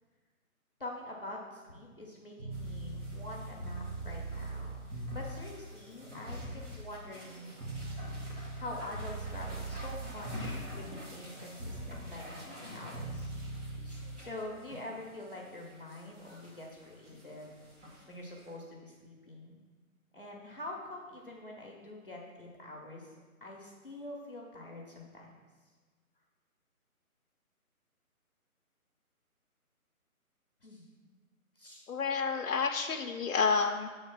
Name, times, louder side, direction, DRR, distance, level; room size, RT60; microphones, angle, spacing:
voice 1, 0.8-7.5 8.5-13.3 13.8-17.6 17.9-19.6 20.1-23.1 23.4-25.3 30.6-31.1 31.6-31.8, left 1 dB, 40° left, -3 dB, 0.8 m, -45 dB
sound 1, 2.4-5.5 6.3-6.7 7.6-10.8 11.6-12.0 12.9-14.2, right 2 dB, 75° right, 1.8 m, -40 dB
sound 2, 2.5-18.5, left 1 dB, 50° right, 2.1 m, -50 dB
voice 2, 31.9-33.9, left 5 dB, 75° left, 2 dB, 0.6 m, -30 dB
7.2 x 3.2 x 6.0 m, 1.4 s
hypercardioid pair, 175°, 44 cm